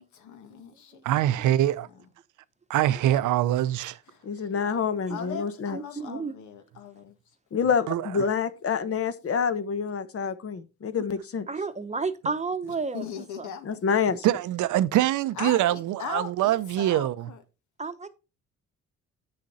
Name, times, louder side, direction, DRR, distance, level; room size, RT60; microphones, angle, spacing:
voice 1, 0.0-1.0 5.1-7.1 12.9-14.0 15.4-17.4, left 7 dB, 75° left, 1.8 m, -39 dB
voice 2, 1.0-1.9 2.7-4.0 7.9-8.1 14.2-17.3, right 13 dB, 80° right, 0.6 m, -24 dB
voice 3, 4.2-5.8 7.5-11.5 13.6-14.2, left 6 dB, 50° left, 1.1 m, -27 dB
voice 4, 5.1-5.4 5.7-6.3 11.5-13.1 13.4-13.5 17.8-18.1, right 4 dB, 25° right, 0.9 m, -31 dB
8.8 x 6.5 x 4.1 m
cardioid pair, 90°, 30 cm